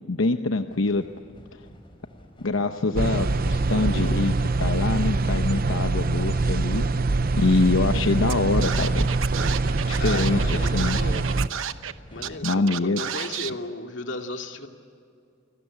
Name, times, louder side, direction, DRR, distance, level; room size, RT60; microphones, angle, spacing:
voice 1, 0.1-1.0 1.5-1.6 2.4-6.8 7.4-9.1 9.9-11.0 12.4-13.0, left 3 dB, 85° left, 7 dB, 0.9 m, -24 dB
sound 1, 0.7-12.4, equal, 25° left, 4.4 m, -48 dB
sound 2, 3.0-11.5, right 3 dB, 45° right, 0.7 m, -24 dB
Scratching (performance technique), 8.3-8.4 8.6-11.9 12.2-13.5, right 9 dB, 80° right, 1.0 m, -31 dB
voice 2, 10.0-11.3 12.1-14.7, left 2 dB, 65° left, 4 dB, 2.3 m, -35 dB
29.0 x 20.0 x 8.5 m, 2.4 s
head